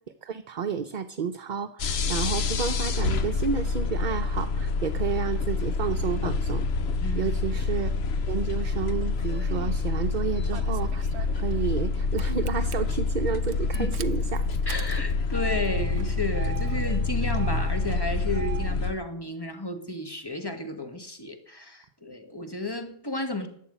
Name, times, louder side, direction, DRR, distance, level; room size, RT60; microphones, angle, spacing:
voice 1, 0.2-6.6 7.1-7.9 8.3-11.0 11.4-14.5, right 6 dB, 50° right, 0.8 m, -31 dB
sound 1, 1.8-18.9, left 4 dB, 70° left, 1.1 m, -27 dB
voice 2, 7.0-7.3 13.7-13.9 14.6-23.5, left 2 dB, 20° left, 1.6 m, -33 dB
Engine starting, 9.2-9.8 10.5-11.9 12.2-12.7 13.4-18.8, right 10 dB, 80° right, 1.0 m, -39 dB
11.5 x 7.5 x 9.9 m
omnidirectional pair, 1.1 m